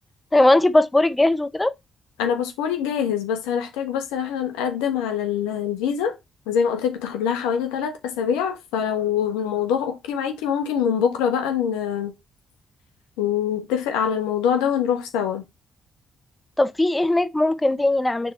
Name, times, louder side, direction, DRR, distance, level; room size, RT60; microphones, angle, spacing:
voice 1, 0.3-1.7 16.6-18.3, left 1 dB, 15° left, 0.7 m, -19 dB
voice 2, 2.2-6.2 6.5-12.1 13.2-15.4, left 8 dB, 85° left, 1.2 m, -24 dB
6.6 x 3.7 x 4.3 m
hypercardioid pair, 50°, 0 cm